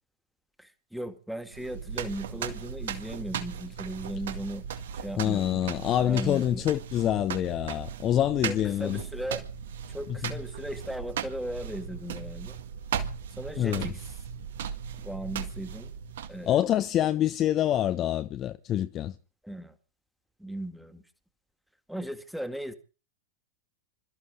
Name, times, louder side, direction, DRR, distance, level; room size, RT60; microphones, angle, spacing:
voice 1, 0.6-4.6 4.9-5.6 6.0-6.7 8.5-9.4 9.9-12.5 13.4-14.1 15.0-15.9 16.3-16.6 19.4-19.8 20.4-21.0 21.9-22.7, right 1 dB, ahead, 2.1 m, -37 dB
sound 1, 1.5-16.6, right 8 dB, 60° right, 1.9 m, -37 dB
voice 2, 5.2-9.0 10.2-10.3 13.6-13.8 16.5-19.1, left 11 dB, 30° left, 0.9 m, -26 dB
27.0 x 14.0 x 3.7 m
figure-of-eight pair, 90°, 0 cm